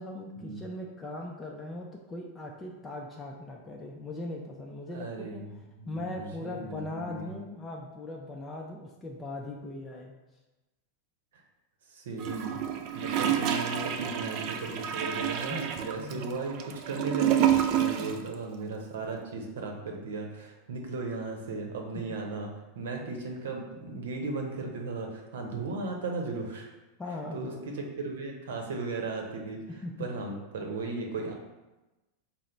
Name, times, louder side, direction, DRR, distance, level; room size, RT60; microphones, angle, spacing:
voice 1, 0.0-5.4 5.9-10.1 15.5-15.7 16.0-16.3 18.0-18.2 27.0-27.6 29.7-30.1, left 2 dB, 15° left, -1 dB, 0.4 m, -39 dB
voice 2, 4.9-5.5 5.8-7.3 11.9-12.6 12.9-17.5 17.7-26.7 27.3-27.5 27.8-29.6 30.0-31.3, right 3 dB, 80° right, 2 dB, 0.7 m, -36 dB
Gurgling / Toilet flush, 12.2-18.3 18.5-18.6, right 10 dB, 50° right, 0.4 m, -29 dB
3.7 x 2.0 x 4.3 m, 1.1 s
hypercardioid pair, 115°, 0 cm